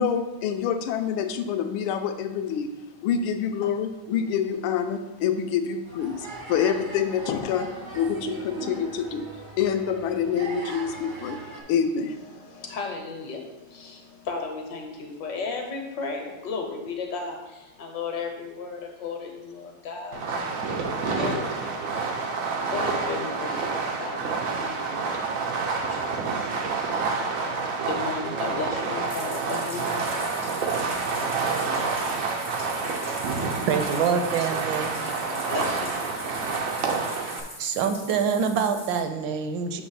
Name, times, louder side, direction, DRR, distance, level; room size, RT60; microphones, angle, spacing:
voice 1, 0.0-2.8 3.0-11.4 11.7-12.2, left 7 dB, 80° left, 8 dB, 1.4 m, -27 dB
sound 1, 5.9-11.6, right 3 dB, 45° right, 0.6 m, -39 dB
voice 2, 12.3-20.6 21.1-21.6 22.7-26.1 26.7-27.6 27.8-30.1 32.8-33.7 35.3-36.2, left 4 dB, 60° left, 2 dB, 1.4 m, -35 dB
Fireworks, 20.1-37.4, right 4 dB, 90° right, 0.7 m, -28 dB
Bathtub (filling or washing), 28.9-39.0, left 1 dB, 25° left, 0.3 m, -41 dB
voice 3, 33.6-34.9 37.6-39.8, right 6 dB, 75° right, 7 dB, 1.2 m, -25 dB
7.4 x 3.0 x 5.8 m, 1.1 s
omnidirectional pair, 2.4 m